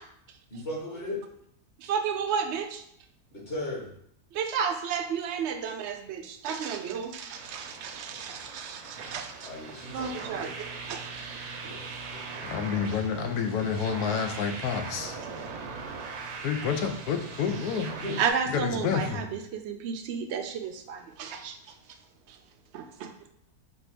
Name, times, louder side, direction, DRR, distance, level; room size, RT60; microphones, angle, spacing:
voice 1, 0.5-1.2 3.3-3.9 9.4-10.5 11.6-11.9 12.1-12.2 12.5-12.6 18.0-18.1, left 1 dB, 40° left, -5 dB, 1.6 m, -37 dB
voice 2, 1.8-2.8 4.3-9.5 9.9-10.5 10.9-11.0 18.2-21.6 22.3-22.4 22.7-23.1, right 6 dB, 65° right, 6 dB, 0.7 m, -32 dB
sound 1, 7.3-18.3, right 4 dB, 80° right, 1.2 m, -40 dB
voice 3, 12.4-15.2 16.4-17.9 18.5-19.2, left 6 dB, 85° left, 6 dB, 1.1 m, -29 dB
4.3 x 2.7 x 4.4 m, 0.69 s
omnidirectional pair, 1.6 m